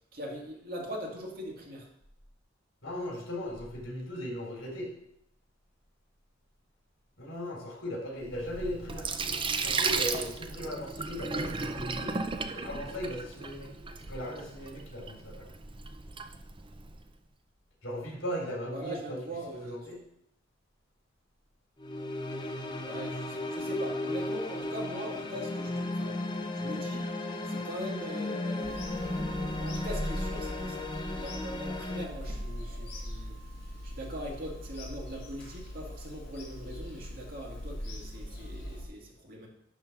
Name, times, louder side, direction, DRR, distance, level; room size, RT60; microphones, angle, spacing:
voice 1, 0.1-1.9 18.7-19.8 22.8-26.2 26.5-27.1 27.4-28.7 29.6-33.4 33.8-39.5, equal, 50° right, -1 dB, 2.1 m, -41 dB
voice 2, 2.8-4.9 7.2-12.2 12.5-13.7 14.0-15.5 17.8-19.2 19.6-20.0, equal, 75° left, -2 dB, 3.6 m, -38 dB
Sink (filling or washing), 8.2-17.0, right 4 dB, 25° right, 0.5 m, -35 dB
sound 1, 21.8-32.0, left 2 dB, 25° left, 0.9 m, -35 dB
Bird vocalization bird call bird song / Telephone, 28.6-38.9, equal, 55° left, 2.8 m, -40 dB
11.0 x 3.8 x 6.0 m, 0.75 s
head